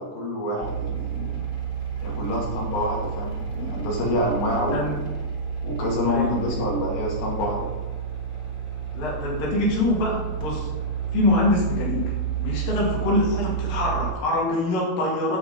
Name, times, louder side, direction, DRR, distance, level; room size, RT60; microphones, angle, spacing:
voice 1, 0.0-1.4 2.0-5.0 5.6-7.7, left 1 dB, 90° left, -4 dB, 4.2 m, -27 dB
sound 1, 0.6-14.1, right 8 dB, 20° left, 2.6 m, -30 dB
voice 2, 4.5-5.0 6.1-6.7 8.9-10.7 11.1-12.1 12.4-15.4, left 2 dB, 70° left, -3 dB, 4.2 m, -24 dB
9.9 x 8.0 x 5.5 m, 1.3 s
omnidirectional pair, 4.1 m